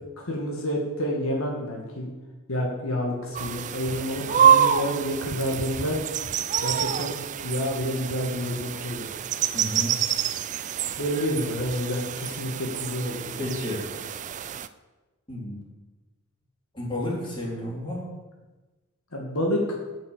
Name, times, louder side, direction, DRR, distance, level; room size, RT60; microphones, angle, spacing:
voice 1, 0.2-2.1 2.5-6.0 6.6-7.1 7.4-9.1 11.0-13.4 19.1-19.6, equal, 75° left, -1 dB, 1.8 m, -29 dB
sound 1, 3.3-14.7, right 8 dB, 35° right, 0.3 m, -27 dB
voice 2, 9.5-10.0 13.3-13.8 15.3-15.6 16.7-18.1, left 1 dB, 25° left, -5 dB, 3.3 m, -31 dB
8.6 x 6.4 x 7.3 m, 1.2 s
head